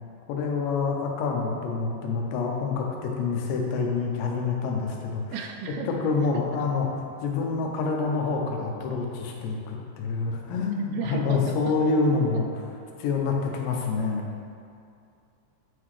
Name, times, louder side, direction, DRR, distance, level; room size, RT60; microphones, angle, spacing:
voice 1, 0.3-5.2 6.0-6.9 7.2-12.5 13.0-14.3, left 4 dB, 80° left, 1 dB, 3.0 m, -27 dB
voice 2, 5.3-5.9 6.5-6.7 10.9-11.7, right 6 dB, 90° right, 3 dB, 2.3 m, -34 dB
8.9 x 5.8 x 3.2 m, 2.5 s
omnidirectional pair, 5.1 m